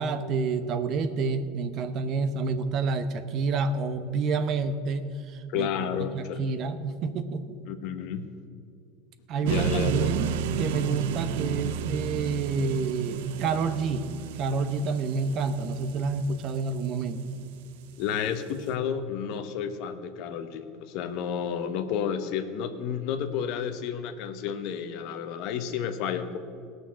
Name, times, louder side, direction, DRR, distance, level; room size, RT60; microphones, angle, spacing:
voice 1, 0.0-7.6 9.3-14.0 14.4-17.4, right 4 dB, 50° right, 10 dB, 0.9 m, -29 dB
voice 2, 5.5-6.4 7.7-8.3 9.4-10.1 18.0-26.4, left 8 dB, 60° left, 8 dB, 1.0 m, -31 dB
sound 1, 9.5-17.5, right 7 dB, 80° right, 0.6 m, -32 dB
17.5 x 6.5 x 6.2 m, 2.4 s
supercardioid pair, 115°, 0 cm